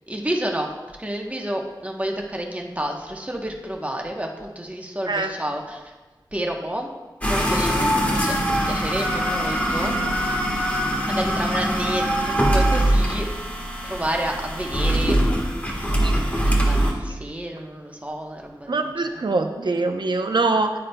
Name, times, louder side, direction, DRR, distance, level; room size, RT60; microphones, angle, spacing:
voice 1, 0.1-0.7 1.0-5.9 6.3-6.9 7.3-10.0 10.5-10.6 11.1-15.2 15.9-19.4, right 1 dB, 15° right, 1 dB, 1.0 m, -30 dB
sound 1, 7.2-16.9, right 1 dB, 20° left, 1.4 m, -22 dB
voice 2, 18.7-20.7, right 3 dB, 65° right, 5 dB, 0.7 m, -23 dB
9.7 x 9.7 x 2.2 m, 1.2 s
wide cardioid pair, 75°, 8 cm